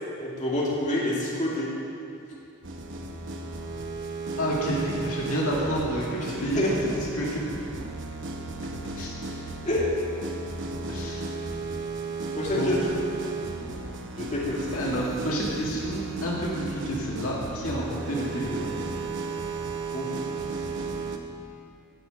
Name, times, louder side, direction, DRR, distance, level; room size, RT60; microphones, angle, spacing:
voice 1, 0.2-1.7 6.6-6.7 9.6-9.9 12.3-12.8 14.2-14.6 19.9-20.2, left 1 dB, 35° left, -6 dB, 2.1 m, -27 dB
sound 1, 2.6-21.2, right 3 dB, 60° right, 0.9 m, -34 dB
voice 2, 4.4-6.6 7.1-7.4 8.9-9.5 10.9-11.3 12.4-12.7 14.7-18.8, right 1 dB, 70° left, -4 dB, 2.2 m, -30 dB
17.0 x 6.4 x 5.2 m, 2.6 s
head